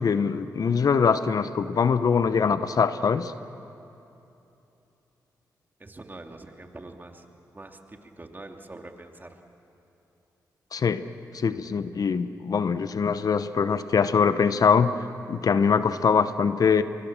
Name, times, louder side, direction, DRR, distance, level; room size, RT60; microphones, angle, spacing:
voice 1, 0.0-3.3 10.7-11.1 11.3-15.0 15.3-16.8, left 6 dB, 60° left, 12 dB, 0.9 m, -23 dB
voice 2, 5.8-7.3 7.5-9.4, right 2 dB, 25° right, 4 dB, 2.6 m, -44 dB
25.0 x 23.0 x 7.4 m, 2.9 s
supercardioid pair, 50°, 7 cm